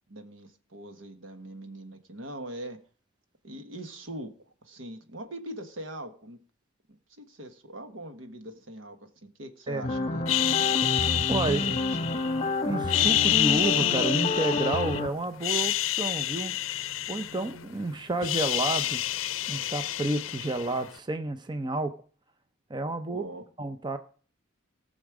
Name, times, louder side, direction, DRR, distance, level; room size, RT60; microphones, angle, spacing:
voice 1, 0.1-2.8 3.4-4.3 4.6-6.4 7.2-10.2 11.5-12.0 23.1-23.4, right 1 dB, 75° right, 7 dB, 1.4 m, -41 dB
sound 1, 9.8-15.1, left 2 dB, 30° left, 1.0 m, -29 dB
sound 2, 10.3-12.4 12.8-15.0 15.3-17.8 18.0-20.9, left 13 dB, 85° left, 0.5 m, -28 dB
voice 2, 11.3-11.7 12.6-16.6 17.1-19.0 19.5-21.9 22.7-23.3 23.6-24.0, right 2 dB, 20° right, 9 dB, 0.6 m, -30 dB
19.0 x 6.4 x 4.9 m, 0.43 s
head